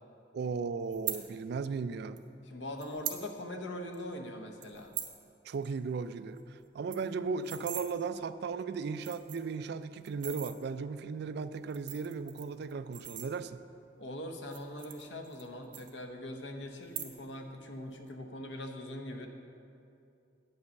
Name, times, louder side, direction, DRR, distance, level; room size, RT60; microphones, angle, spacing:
voice 1, 0.3-2.2 5.4-13.6, right 5 dB, 65° right, 13 dB, 0.4 m, -36 dB
sound 1, 0.9-1.2 2.2-2.3 2.8-3.2 3.6-3.7 3.9-4.2 4.6-5.2 5.5-5.7 6.0-6.1 6.4-6.5 6.7-7.9 8.5-8.6 9.0-9.6 10.1-10.5 11.5-13.7 14.4-15.5 15.7-16.4 16.8-17.4 17.7-18.1, right 12 dB, 85° right, 0.8 m, -41 dB
voice 2, 2.5-4.9 14.0-19.3, left 1 dB, 80° left, 4 dB, 0.9 m, -42 dB
9.2 x 5.5 x 7.0 m, 2.6 s
head